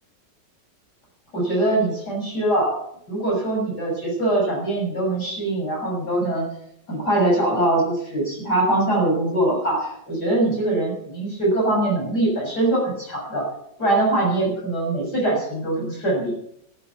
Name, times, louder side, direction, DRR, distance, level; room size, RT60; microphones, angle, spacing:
voice 1, 1.3-2.7 3.1-6.5 6.9-13.5 13.8-16.3, right 2 dB, 60° left, -2 dB, 7.5 m, -22 dB
14.0 x 12.5 x 7.1 m, 0.73 s
omnidirectional pair, 2.0 m